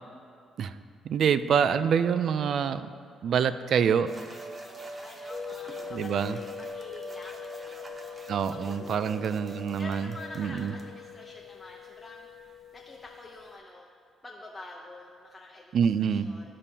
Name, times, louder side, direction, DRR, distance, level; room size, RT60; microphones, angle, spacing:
voice 1, 1.0-2.9 3.2-4.1 5.9-6.4 8.3-10.1 10.4-10.7 15.7-16.3, right 7 dB, 65° right, 13 dB, 0.4 m, -26 dB
sound 1, 4.1-10.8, right 2 dB, 35° right, 0.9 m, -44 dB
voice 2, 4.6-9.4 9.8-13.9 14.2-16.5, left 2 dB, 15° left, -2 dB, 0.8 m, -47 dB
sound 2, 5.3-13.6, left 10 dB, 50° left, 0.5 m, -44 dB
15.0 x 5.2 x 2.8 m, 2.4 s
cardioid pair, 90°, 0 cm